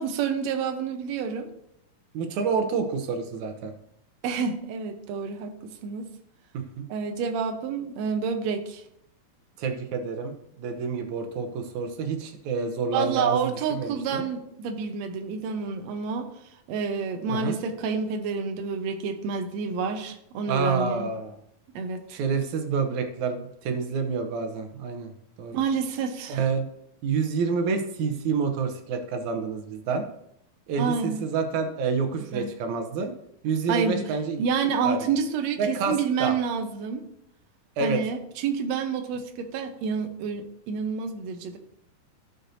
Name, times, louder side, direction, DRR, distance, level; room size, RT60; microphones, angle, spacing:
voice 1, 0.0-1.5 4.2-6.1 6.9-8.8 12.9-16.3 16.7-21.1 21.7-22.2 25.5-26.4 30.8-31.3 32.3-32.5 33.7-34.0 34.4-37.0 37.8-41.6, right 6 dB, 90° right, 5 dB, 1.5 m, -29 dB
voice 2, 2.1-3.7 6.5-6.8 9.6-14.2 17.3-17.5 20.5-21.4 22.1-25.1 25.4-25.6 26.3-26.7 27.0-30.0 30.7-33.1 33.4-34.5 34.8-35.1 35.6-35.9 36.2-36.3 37.8-38.0, right 5 dB, 70° right, 6 dB, 1.8 m, -28 dB
15.5 x 6.6 x 2.7 m, 0.74 s
omnidirectional pair, 4.3 m